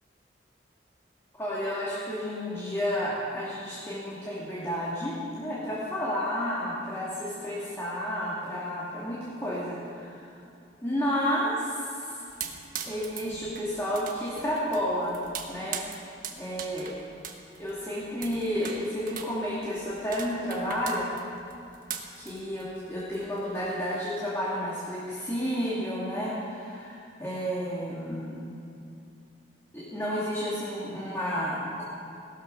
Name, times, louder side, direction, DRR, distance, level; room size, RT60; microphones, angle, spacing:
voice 1, 1.4-10.3 10.8-12.2 12.8-15.2 15.5-15.8 16.4-17.0 17.6-21.1 22.2-28.4 29.7-31.8, equal, 15° left, -8 dB, 2.5 m, -31 dB
sound 1, 12.3-23.6, right 7 dB, 50° right, 1.3 m, -41 dB
17.5 x 13.0 x 5.5 m, 2.6 s
head